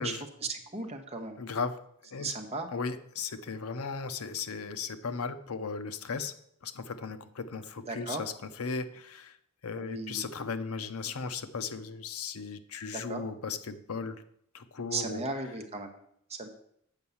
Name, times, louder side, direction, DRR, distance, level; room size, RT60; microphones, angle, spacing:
voice 1, 0.0-1.4 2.2-2.7 7.9-8.2 9.8-10.2 12.9-13.2 14.9-16.0 16.3-16.5, right 3 dB, 30° right, 4 dB, 1.0 m, -36 dB
voice 2, 1.4-1.8 2.1-2.3 2.7-6.3 6.6-8.3 8.6-9.4 9.6-14.2 14.5-15.2, left 5 dB, 75° left, 11 dB, 0.7 m, -36 dB
8.0 x 5.5 x 7.1 m, 0.72 s
head